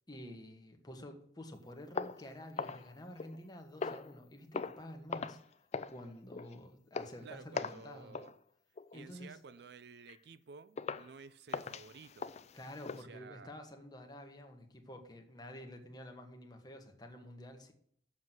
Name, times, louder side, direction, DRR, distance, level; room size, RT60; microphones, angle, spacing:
voice 1, 0.1-5.4 5.9-8.2 8.9-9.4 12.5-17.7, left 1 dB, 25° left, 1.4 m, -50 dB
sound 1, 2.0-3.4 3.8-4.2 4.5-4.8 5.1-5.4 5.7-6.0 6.3-6.5 6.9-7.2 7.5-7.9 8.1-8.3 8.8-9.0 9.5-9.6 10.1-10.2 10.8-11.1 11.5-13.0, left 5 dB, 40° left, 0.4 m, -40 dB
voice 2, 7.2-8.3 8.9-12.3 12.9-13.5, right 5 dB, 65° right, 0.5 m, -53 dB
7.4 x 6.1 x 7.6 m
head